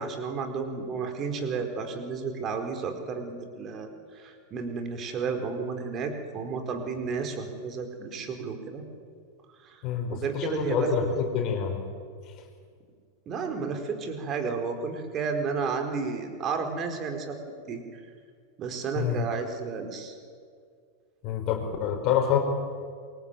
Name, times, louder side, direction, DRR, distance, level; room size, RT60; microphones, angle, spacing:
voice 1, 0.0-8.8 9.6-9.8 10.1-10.9 13.3-17.4 17.7-18.0 18.6-20.1, right 5 dB, 30° right, 6 dB, 4.5 m, -32 dB
voice 2, 9.8-11.8 18.9-19.2 21.2-22.4, left 8 dB, 40° left, 3 dB, 4.9 m, -27 dB
27.5 x 23.0 x 9.2 m, 2.1 s
figure-of-eight pair, 90°, 0 cm